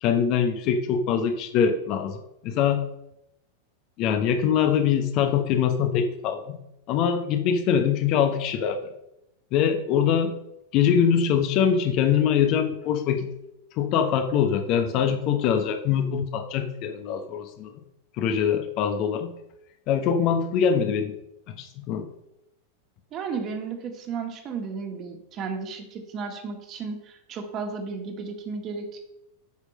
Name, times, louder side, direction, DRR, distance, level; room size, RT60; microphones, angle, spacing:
voice 1, 0.0-2.2 2.4-2.8 4.0-6.6 6.9-8.9 9.5-10.4 10.7-13.2 13.8-17.7 18.2-19.3 19.9-21.2 21.5-22.1, left 7 dB, 40° left, 8 dB, 1.1 m, -23 dB
voice 2, 23.1-29.0, right 5 dB, 35° right, 4 dB, 2.0 m, -34 dB
8.4 x 6.5 x 6.4 m, 0.84 s
figure-of-eight pair, 90°, 0 cm